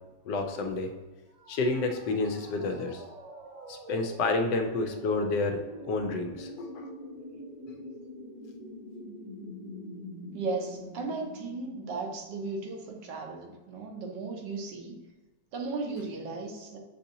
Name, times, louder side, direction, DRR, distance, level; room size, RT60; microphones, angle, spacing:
voice 1, 0.3-0.9 1.5-3.0 3.7-6.9, left 3 dB, 80° left, 5 dB, 1.2 m, -30 dB
sound 1, 1.3-13.1, equal, 55° right, 1.1 m, -45 dB
voice 2, 10.3-15.0 15.5-16.8, right 3 dB, 80° right, 2 dB, 1.4 m, -36 dB
7.0 x 2.7 x 2.7 m, 1.2 s
omnidirectional pair, 1.9 m